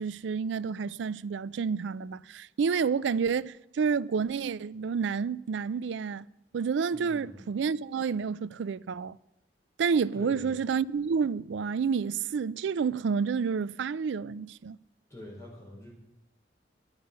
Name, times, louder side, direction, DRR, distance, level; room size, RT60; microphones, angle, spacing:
voice 1, 0.0-6.2 6.5-9.2 9.8-14.8, right 6 dB, 70° right, 0.4 m, -29 dB
voice 2, 6.9-7.4 10.1-10.5 15.1-15.9, left 1 dB, 15° left, 5.5 m, -45 dB
12.0 x 10.5 x 6.6 m
head